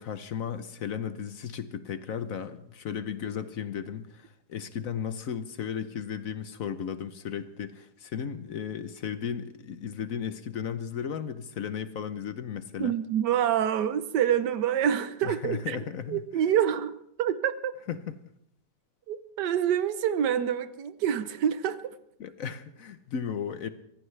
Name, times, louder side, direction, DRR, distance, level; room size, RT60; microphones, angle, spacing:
voice 1, 0.0-12.9 15.2-16.2 17.9-18.1 22.2-23.7, left 8 dB, 60° left, 1.1 m, -35 dB
voice 2, 12.8-17.7 19.1-21.9, right 9 dB, 75° right, 1.4 m, -27 dB
24.0 x 16.5 x 3.3 m
omnidirectional pair, 1.9 m